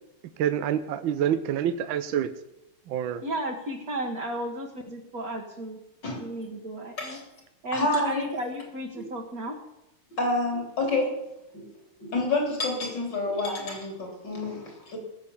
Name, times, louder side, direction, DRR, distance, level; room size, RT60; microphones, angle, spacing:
voice 1, 0.4-2.3 2.9-3.2, right 9 dB, 70° right, 10 dB, 1.5 m, -27 dB
voice 2, 3.2-5.8 6.2-7.2 7.6-9.6, right 1 dB, 45° right, 0 dB, 1.7 m, -34 dB
voice 3, 7.7-8.3 10.1-11.2 11.5-11.6 12.0-15.0, left 2 dB, 55° left, 1 dB, 4.2 m, -28 dB
18.5 x 7.4 x 7.1 m, 0.89 s
omnidirectional pair, 2.4 m